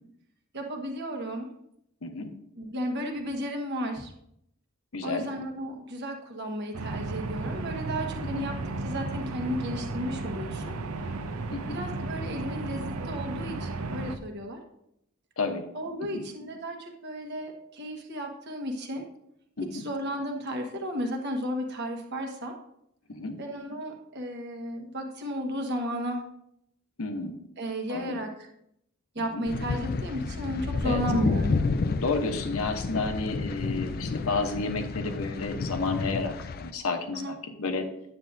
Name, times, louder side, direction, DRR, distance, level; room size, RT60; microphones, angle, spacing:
voice 1, 0.5-1.5 2.6-4.1 5.0-10.7 11.7-14.6 15.7-19.1 19.6-22.6 23.4-26.2 27.6-28.5 29.1-31.6 37.1-37.4, equal, 50° right, 3 dB, 1.3 m, -34 dB
voice 2, 2.0-2.3 4.9-5.3 8.3-8.5 11.5-11.8 15.4-15.6 16.1-16.2 19.6-19.8 23.1-23.4 27.0-27.4 27.9-28.2 29.2-29.4 30.8-31.0 32.0-37.9, left 3 dB, 75° left, 6 dB, 0.9 m, -31 dB
sound 1, 6.7-14.2, right 3 dB, 85° right, 0.7 m, -34 dB
sound 2, 29.5-36.7, left 3 dB, 45° left, 0.4 m, -30 dB
9.3 x 7.8 x 2.6 m, 0.76 s
head